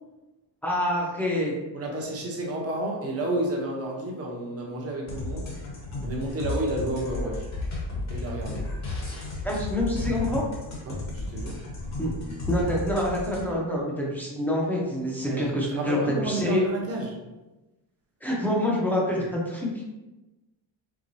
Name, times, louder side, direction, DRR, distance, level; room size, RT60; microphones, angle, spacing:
voice 1, 0.6-1.5 9.4-10.5 12.0-12.1 12.5-16.7 18.2-19.8, left 1 dB, 5° left, -4 dB, 0.7 m, -26 dB
voice 2, 1.7-5.5 6.0-7.5 8.1-8.6 10.9-11.6 15.3-17.1, right 1 dB, 30° right, -1 dB, 0.8 m, -31 dB
sound 1, 5.1-13.5, left 2 dB, 35° left, 1.1 m, -33 dB
4.8 x 3.5 x 2.7 m, 1.1 s
cardioid pair, 175°, 45 cm